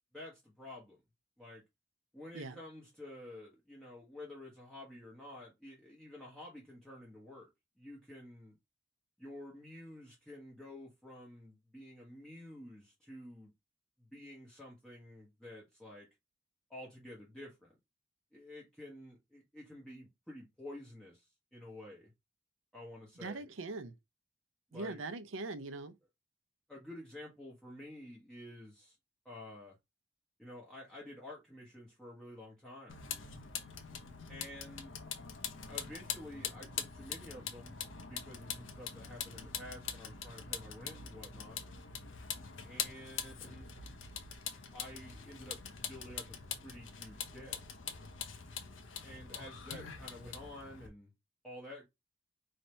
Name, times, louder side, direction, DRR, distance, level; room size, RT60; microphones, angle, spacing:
voice 1, 0.1-1.0 1.4-1.6 2.1-7.5 7.8-8.5 9.2-13.5 14.0-16.1 16.7-17.7 18.3-21.3 21.5-22.1 22.7-23.4 24.7-25.0 26.7-29.0 29.2-29.8 30.4-33.0 34.3-35.0 35.7-41.6 42.6-43.7 44.7-45.6 45.9-47.6 49.0-51.1 51.4-51.9, left 1 dB, 5° left, 1.0 m, -50 dB
voice 2, 23.2-23.9 24.7-25.9, right 3 dB, 90° right, 0.6 m, -41 dB
Vehicle, 32.9-50.9, left 7 dB, 75° left, 0.7 m, -43 dB
3.3 x 2.8 x 4.3 m
head